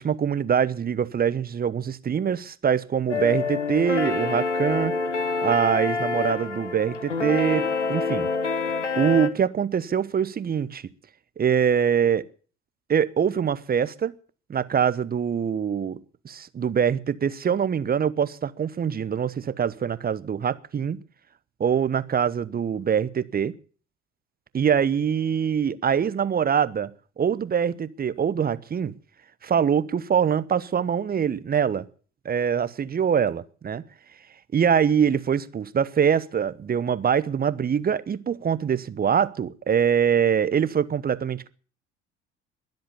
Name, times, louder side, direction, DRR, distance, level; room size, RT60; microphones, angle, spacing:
voice 1, 0.0-5.0 5.4-8.3 9.0-10.8 11.4-12.2 12.9-14.1 14.5-16.0 16.2-21.0 21.6-23.5 24.5-28.9 29.4-31.9 32.2-33.8 34.5-41.5, right 7 dB, 25° right, 1.0 m, -24 dB
sound 1, 3.1-9.3, left 4 dB, 85° left, 1.2 m, -27 dB
21.5 x 7.9 x 7.1 m
figure-of-eight pair, 60°, 35 cm